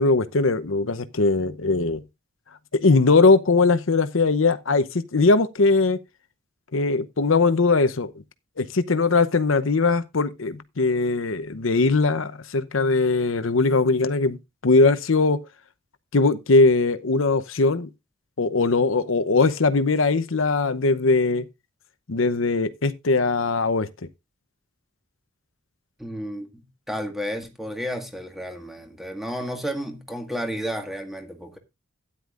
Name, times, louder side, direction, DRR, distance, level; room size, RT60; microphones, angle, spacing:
voice 1, 0.0-2.0 2.7-6.0 6.7-8.1 8.6-14.4 14.6-15.4 16.1-17.9 18.4-21.5 22.1-23.9, left 3 dB, 75° left, 0.8 m, -20 dB
voice 2, 26.0-31.6, equal, ahead, 1.8 m, -32 dB
13.0 x 10.0 x 2.5 m
head